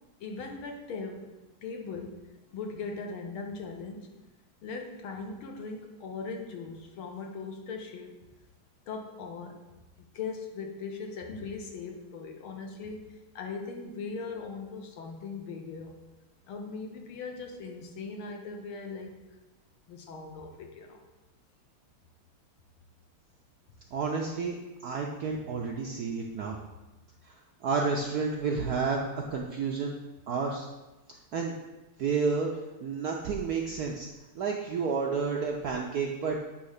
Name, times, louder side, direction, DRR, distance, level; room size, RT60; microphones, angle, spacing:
voice 1, 0.2-4.1 4.6-8.1 8.9-9.6 10.0-15.9 16.5-19.2 19.9-21.0 26.5-26.6, left 4 dB, 75° left, 3 dB, 1.8 m, -39 dB
voice 2, 23.9-24.5 24.8-26.6 27.3-27.4 27.6-29.9 30.3-30.7 31.3-31.5 32.0-32.5 32.8-34.1 34.4-36.4, right 5 dB, 70° right, 0 dB, 0.9 m, -30 dB
8.9 x 3.2 x 6.4 m, 1.1 s
omnidirectional pair, 2.4 m